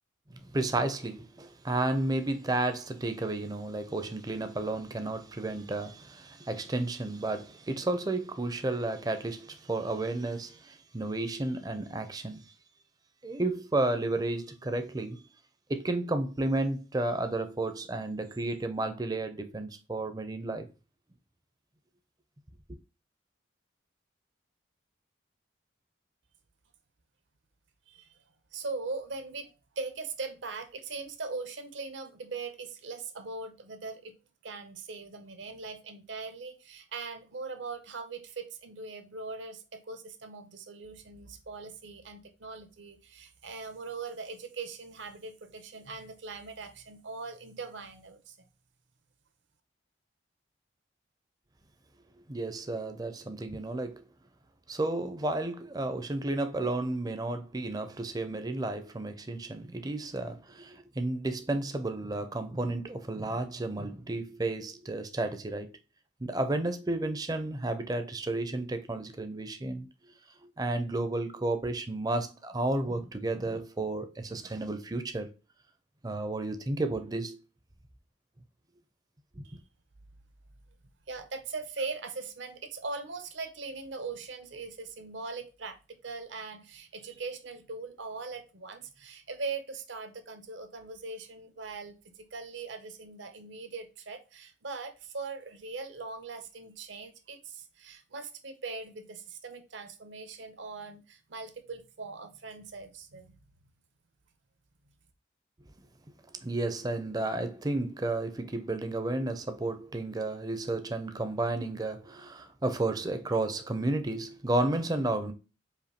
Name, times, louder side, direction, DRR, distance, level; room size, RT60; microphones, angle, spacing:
voice 1, 0.3-12.4 13.2-15.2 15.7-20.7 52.3-54.0 54.7-65.7 66.2-69.9 70.4-75.3 76.0-77.4 79.4-79.5 106.4-115.3, right 2 dB, 20° right, 0.5 m, -32 dB
voice 2, 28.5-29.5 29.8-34.1 34.4-48.4 79.4-79.6 81.1-103.4, right 4 dB, 70° right, 0.8 m, -40 dB
5.0 x 2.6 x 2.9 m
head